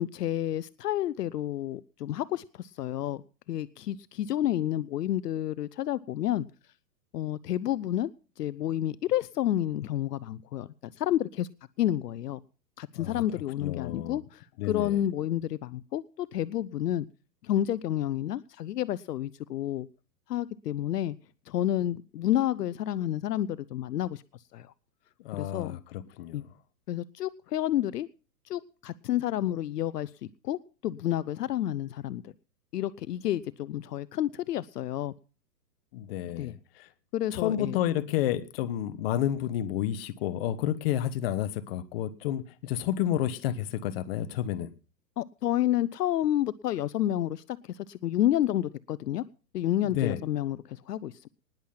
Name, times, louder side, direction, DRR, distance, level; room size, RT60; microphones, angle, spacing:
voice 1, 0.0-3.2 3.5-6.5 7.1-8.1 8.4-11.5 11.8-12.4 12.8-17.1 17.4-19.9 20.3-21.1 21.5-24.2 24.5-24.7 25.3-25.8 26.3-26.5 26.9-28.1 28.5-30.1 30.4-32.3 32.7-35.1 36.3-36.5 37.1-37.8 45.2-49.2 49.5-51.3, left 12 dB, 70° left, 0.8 m, -30 dB
voice 2, 13.6-14.2 14.6-15.0 25.2-26.5 35.9-36.9 37.3-44.7 49.8-50.2, left 11 dB, 35° left, 1.3 m, -30 dB
20.0 x 7.3 x 5.8 m
hypercardioid pair, 160°, 50 cm